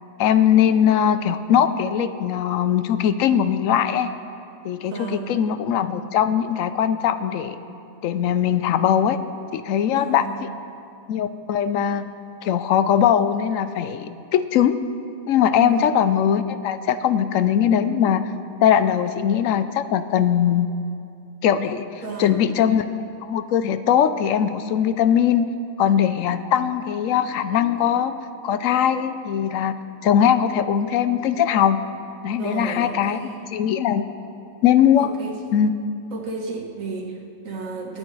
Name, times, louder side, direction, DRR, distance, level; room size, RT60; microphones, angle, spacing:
voice 1, 0.2-4.1 4.6-7.6 8.0-9.2 9.5-10.3 11.1-12.1 12.4-14.8 15.3-18.2 18.6-20.7 21.4-21.9 22.2-22.8 23.2-25.5 25.8-28.1 28.4-29.7 30.0-31.8 32.2-33.2 33.5-34.1 34.6-35.1 35.5-35.7, left 9 dB, 80° left, 11 dB, 1.0 m, -20 dB
voice 2, 4.9-5.3 9.9-10.4 15.5-15.9 22.0-22.4 32.3-33.5 35.0-35.3 36.1-38.0, right 3 dB, 75° right, 0 dB, 1.7 m, -32 dB
25.0 x 8.7 x 3.2 m, 2.5 s
omnidirectional pair, 1.4 m